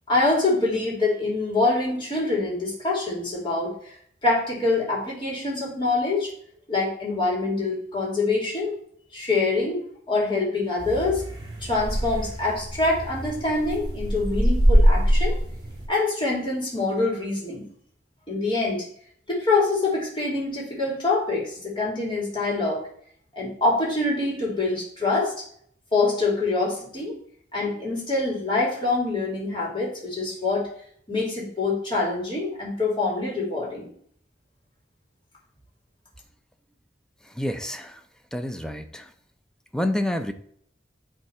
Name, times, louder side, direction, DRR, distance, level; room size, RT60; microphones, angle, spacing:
voice 1, 0.1-3.7 4.2-6.3 6.7-8.8 9.1-9.8 10.1-11.2 11.6-15.4 15.9-17.7 18.3-18.9 19.3-22.8 23.4-25.4 25.9-27.1 27.5-30.7 31.1-33.9, left 3 dB, 30° left, -4 dB, 2.6 m, -25 dB
sound 1, 10.8-15.8, equal, 30° right, 2.6 m, -23 dB
voice 2, 37.2-38.0 38.3-39.1 39.7-40.3, left 1 dB, 5° left, 7 dB, 0.5 m, -28 dB
10.5 x 3.7 x 4.4 m, 0.63 s
head